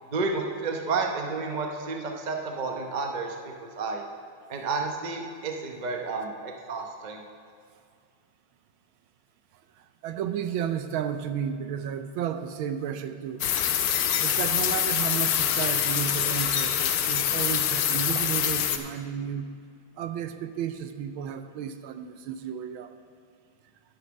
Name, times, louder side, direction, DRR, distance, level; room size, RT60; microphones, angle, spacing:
voice 1, 0.1-4.0 4.5-7.2, right 4 dB, 55° right, 3 dB, 0.4 m, -31 dB
voice 2, 9.8-13.4 14.2-19.5 20.0-22.9, right 8 dB, 75° right, 8 dB, 1.4 m, -33 dB
sound 1, 13.4-18.8, left 9 dB, 80° left, 1.5 m, -25 dB
11.5 x 6.6 x 6.2 m, 2.2 s
omnidirectional pair, 2.3 m